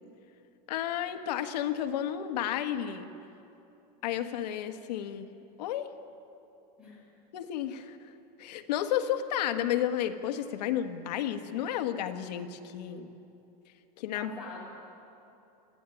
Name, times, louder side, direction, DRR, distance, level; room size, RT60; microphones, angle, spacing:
voice 1, 0.7-3.1 4.0-5.3 5.6-5.9 7.3-8.1 8.4-13.1 14.0-14.3, left 10 dB, 85° left, 8 dB, 1.5 m, -32 dB
voice 2, 14.1-14.7, left 3 dB, 5° right, -6 dB, 6.4 m, -44 dB
21.5 x 15.0 x 9.9 m, 2.8 s
supercardioid pair, 180°, 21 cm